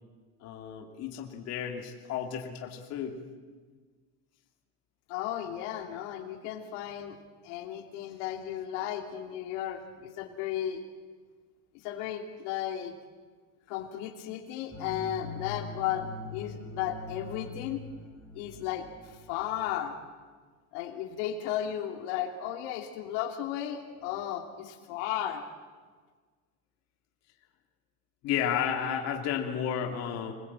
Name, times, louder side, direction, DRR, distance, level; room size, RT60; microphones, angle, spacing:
voice 1, 0.4-3.2 28.2-30.3, left 8 dB, 45° left, 2 dB, 2.9 m, -32 dB
voice 2, 5.1-7.2 7.4-10.8 11.8-12.9 13.7-17.8 18.3-19.9 20.7-25.4, left 11 dB, 70° left, 3 dB, 2.7 m, -34 dB
sound 1, 14.7-19.8, left 2 dB, ahead, 6.2 m, -43 dB
26.5 x 20.5 x 8.8 m, 1.5 s
cardioid pair, 165°, 37 cm